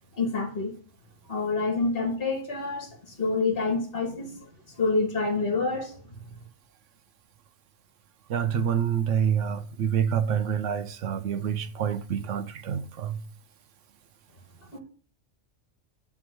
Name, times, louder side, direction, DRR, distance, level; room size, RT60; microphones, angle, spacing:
voice 1, 0.1-0.7 1.3-6.0 14.7-14.8, left 3 dB, 50° left, 1.7 m, -28 dB
voice 2, 8.3-13.2, right 8 dB, 80° right, 1.1 m, -27 dB
10.5 x 3.7 x 6.2 m
omnidirectional pair, 1.2 m